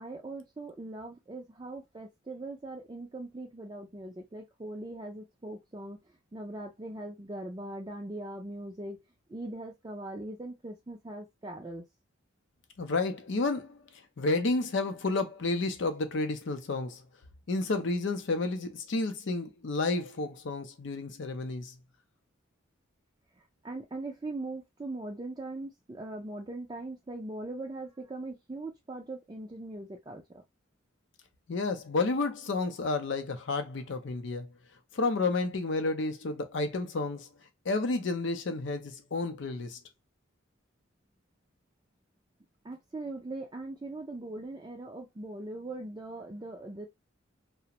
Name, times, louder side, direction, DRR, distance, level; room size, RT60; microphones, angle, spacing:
voice 1, 0.0-6.0 6.3-9.0 9.3-11.8 23.6-30.4 42.6-46.9, right 2 dB, 20° right, 0.4 m, -40 dB
voice 2, 12.8-13.8 14.2-17.0 17.5-21.7 31.5-34.5 34.9-37.3 37.7-39.8, left 3 dB, 60° left, 0.5 m, -31 dB
2.4 x 2.1 x 2.8 m
head